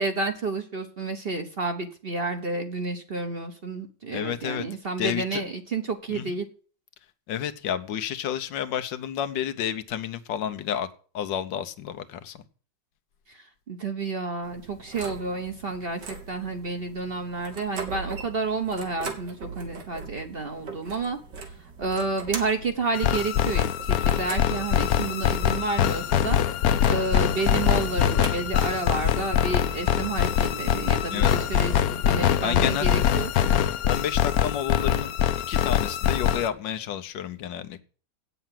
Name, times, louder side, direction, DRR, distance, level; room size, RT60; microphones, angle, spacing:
voice 1, 0.0-6.5 13.7-21.2 21.8-26.4 26.9-33.3, right 3 dB, 40° right, 6 dB, 1.0 m, -30 dB
voice 2, 4.1-4.6 5.0-5.4 6.1-6.4 7.3-10.9 11.1-12.4 31.1-31.3 32.4-33.0 33.5-35.1 35.5-37.8, left 9 dB, 85° left, 10 dB, 1.5 m, -30 dB
sound 1, 14.4-32.1, right 5 dB, 75° right, 2.3 m, -41 dB
sound 2, 22.9-36.5, left 9 dB, 65° left, 1.0 m, -23 dB
8.6 x 7.0 x 7.5 m, 0.41 s
omnidirectional pair, 1.9 m